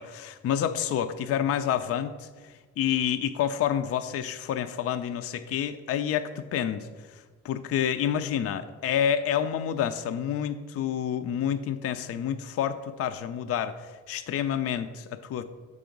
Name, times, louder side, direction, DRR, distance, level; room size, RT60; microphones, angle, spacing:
voice 1, 0.0-15.4, left 9 dB, 55° left, 9 dB, 0.4 m, -29 dB
6.8 x 4.8 x 5.1 m, 1.4 s
cardioid pair, 90°, 30 cm